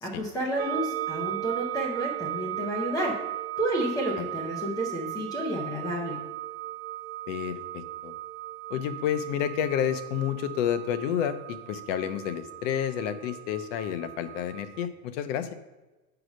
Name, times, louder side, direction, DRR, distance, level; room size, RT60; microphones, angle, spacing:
voice 1, 0.0-3.1 3.6-6.2, right 1 dB, 10° left, -2 dB, 0.6 m, -30 dB
sound 1, 0.6-14.9, right 15 dB, 50° right, 0.5 m, -37 dB
voice 2, 7.3-8.1 8.7-15.5, left 9 dB, 60° left, 10 dB, 0.8 m, -30 dB
6.3 x 4.9 x 6.2 m, 1.1 s
supercardioid pair, 160°, 44 cm